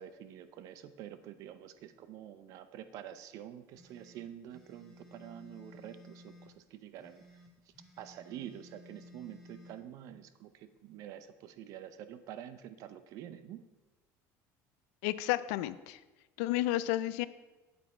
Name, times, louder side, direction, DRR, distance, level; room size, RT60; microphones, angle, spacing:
voice 1, 0.0-13.6, right 10 dB, 50° right, 12 dB, 0.6 m, -48 dB
sound 1, 3.7-6.5 7.0-9.8, left 1 dB, 5° left, 1.4 m, -56 dB
voice 2, 15.0-16.0 16.4-17.3, left 15 dB, 90° left, 15 dB, 0.4 m, -31 dB
8.6 x 8.1 x 4.3 m, 1.2 s
cardioid pair, 170°, 7 cm